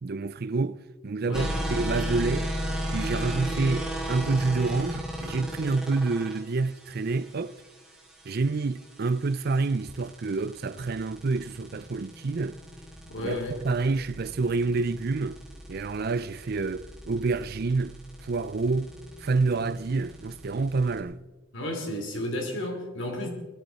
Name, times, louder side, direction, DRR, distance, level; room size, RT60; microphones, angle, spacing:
voice 1, 0.0-2.5 2.9-7.6 8.3-12.6 13.2-15.4 15.7-18.9 19.2-21.2, right 3 dB, 45° right, 0.4 m, -28 dB
voice 2, 1.2-1.6 13.1-13.6 21.5-23.3, left 1 dB, 60° left, 3.0 m, -32 dB
sound 1, 1.3-21.0, equal, 5° right, 2.3 m, -36 dB
20.5 x 14.0 x 4.1 m
head